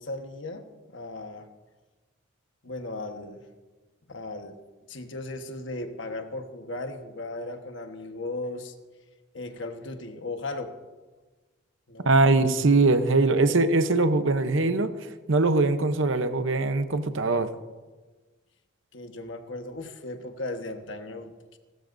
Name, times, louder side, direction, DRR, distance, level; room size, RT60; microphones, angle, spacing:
voice 1, 0.0-1.5 2.6-3.4 4.1-4.5 4.9-8.7 9.3-10.7 11.9-12.2 18.9-21.6, left 2 dB, 65° left, 5 dB, 1.4 m, -36 dB
voice 2, 12.0-14.9 15.3-17.5, right 3 dB, 65° right, 10 dB, 0.9 m, -22 dB
29.5 x 13.5 x 2.7 m, 1.3 s
head